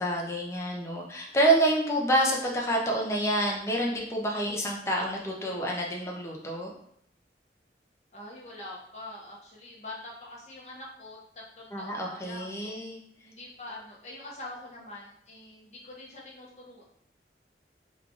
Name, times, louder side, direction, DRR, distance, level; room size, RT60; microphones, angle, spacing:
voice 1, 0.0-6.7 11.7-13.0, right 1 dB, 15° left, -1 dB, 0.5 m, -28 dB
voice 2, 8.1-11.2 11.5-12.7 13.2-16.8, left 2 dB, 40° left, -4 dB, 0.8 m, -44 dB
3.2 x 2.4 x 3.8 m, 0.69 s
head